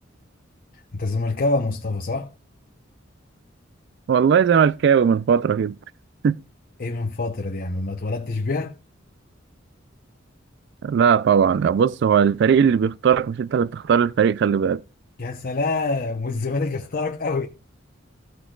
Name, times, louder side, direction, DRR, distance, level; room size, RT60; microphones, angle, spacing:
voice 1, 0.7-2.3 6.8-8.8 15.2-17.5, left 3 dB, 45° left, 0.8 m, -26 dB
voice 2, 4.1-5.8 6.2-6.4 10.8-14.8, right 7 dB, 60° right, 0.3 m, -18 dB
15.0 x 6.2 x 2.3 m
head